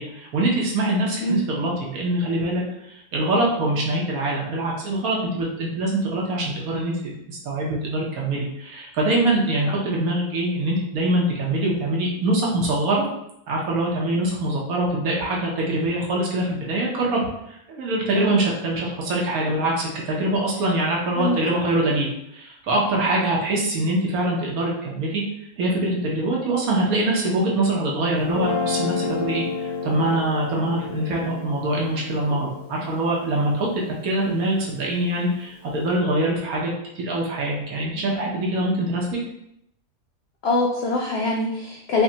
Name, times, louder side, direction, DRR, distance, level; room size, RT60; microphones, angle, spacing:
voice 1, 0.0-2.6 2.9-13.1 13.5-25.2 25.6-36.7 37.0-39.1, right 1 dB, 85° right, -2 dB, 1.3 m, -24 dB
Guitar, 28.2-34.5, left 5 dB, 90° left, 1.1 m, -31 dB
voice 2, 40.4-42.0, left 2 dB, 65° left, 0 dB, 0.6 m, -23 dB
5.1 x 2.2 x 2.7 m, 0.80 s
omnidirectional pair, 1.5 m